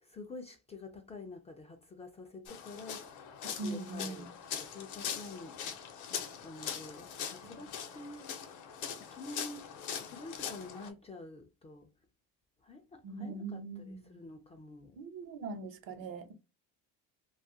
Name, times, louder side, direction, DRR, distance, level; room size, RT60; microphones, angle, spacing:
voice 1, 0.0-3.1 3.6-5.6 6.1-8.3 9.1-9.7 10.0-11.9 12.6-15.0, left 2 dB, 20° left, 0.3 m, -48 dB
sound 1, 2.5-10.9, left 8 dB, 55° left, 0.7 m, -42 dB
voice 2, 3.6-4.3 7.4-7.6 13.0-14.2 15.0-16.3, right 3 dB, 65° right, 0.8 m, -41 dB
2.5 x 2.3 x 2.6 m
cardioid pair, 120°, 36 cm